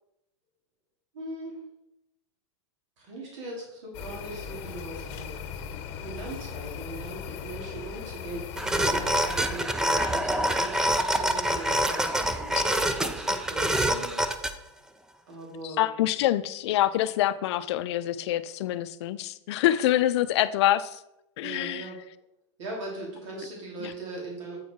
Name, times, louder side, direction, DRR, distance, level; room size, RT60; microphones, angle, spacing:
voice 1, 1.1-1.6 3.0-5.4 6.0-14.2 15.3-15.9 21.4-22.0 22.6-24.6, right 2 dB, 70° right, -2 dB, 2.9 m, -39 dB
sound 1, 3.9-9.6, left 7 dB, 40° left, 0.9 m, -38 dB
sound 2, 8.6-14.5, right 1 dB, 5° right, 0.3 m, -26 dB
voice 2, 15.8-21.0 21.4-21.8 23.8-23.9, left 13 dB, 60° left, 14 dB, 0.5 m, -25 dB
8.3 x 4.6 x 4.4 m, 0.85 s
supercardioid pair, 150°, 16 cm